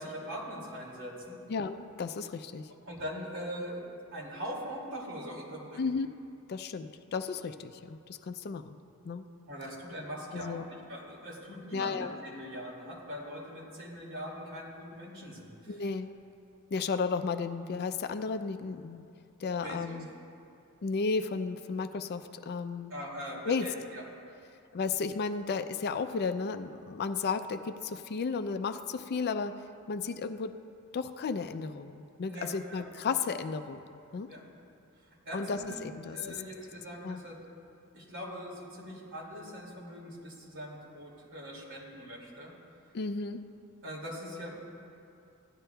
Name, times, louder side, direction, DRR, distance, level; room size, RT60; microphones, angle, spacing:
voice 1, 0.0-1.4 2.9-3.8 4.1-5.9 9.5-15.8 19.6-20.0 22.9-24.0 32.3-32.8 34.3-34.4 35.0-35.8 36.1-37.4 37.9-42.5 43.8-44.5, equal, 65° right, -3 dB, 2.3 m, -42 dB
voice 2, 1.5-2.7 5.8-6.1 6.5-8.8 9.0-9.3 10.3-10.7 11.7-12.1 15.7-16.1 16.7-19.0 19.4-20.1 20.8-22.9 23.5-23.7 24.7-29.6 29.9-30.5 30.9-33.8 34.1-34.3 35.3-36.4 37.0-37.2 42.9-43.4, left 4 dB, 45° left, 9 dB, 0.4 m, -33 dB
16.0 x 11.0 x 2.3 m, 2.5 s
head